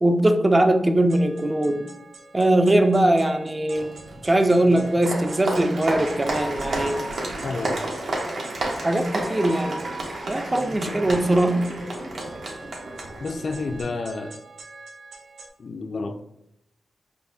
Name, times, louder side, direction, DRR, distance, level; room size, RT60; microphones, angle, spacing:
voice 1, 0.0-1.9 2.3-4.0 4.2-7.1 8.8-9.8 10.3-11.7, right 1 dB, 25° right, 0.3 m, -21 dB
sound 1, 1.1-15.5, right 3 dB, 90° right, 0.5 m, -45 dB
Applause, 3.8-13.8, right 1 dB, 70° right, 0.8 m, -31 dB
voice 2, 7.4-7.8 13.2-14.4 15.6-16.2, left 3 dB, 55° left, 0.3 m, -30 dB
5.2 x 2.1 x 2.7 m
cardioid pair, 85°, 0 cm